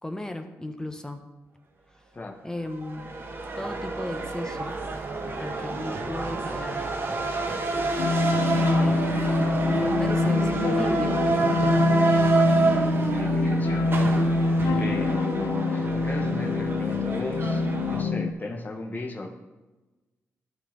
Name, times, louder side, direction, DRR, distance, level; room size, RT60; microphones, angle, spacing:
voice 1, 0.0-1.2 2.4-3.1 3.6-4.8 5.4-6.9 7.7-8.0 8.7-9.1 9.7-12.0 14.6-14.9, left 1 dB, 10° left, 6 dB, 1.1 m, -35 dB
sound 1, 2.7-18.0, right 3 dB, 45° right, 1.4 m, -28 dB
sound 2, 8.0-18.3, left 2 dB, 75° left, 0.5 m, -25 dB
voice 2, 12.6-14.0 14.8-19.3, left 2 dB, 35° left, 2 dB, 1.5 m, -35 dB
12.5 x 4.5 x 4.0 m, 1.1 s
cardioid pair, 60°, 5 cm